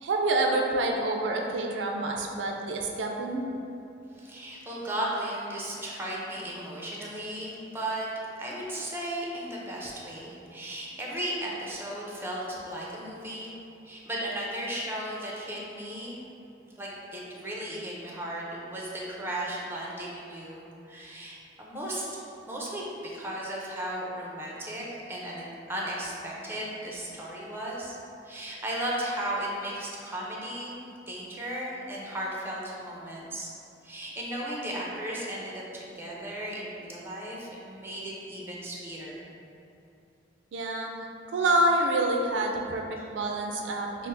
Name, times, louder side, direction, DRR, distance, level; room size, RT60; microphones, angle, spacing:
voice 1, 0.0-3.5 40.5-40.9 41.3-42.8 43.1-44.1, right 2 dB, 75° right, 1 dB, 0.4 m, -27 dB
voice 2, 4.1-8.1 8.4-13.5 13.8-16.2 16.6-22.0 22.4-28.0 28.2-30.8 31.1-33.5 33.8-39.2 43.0-43.1, right 1 dB, 15° right, -4 dB, 0.5 m, -35 dB
5.6 x 2.0 x 2.6 m, 2.8 s
head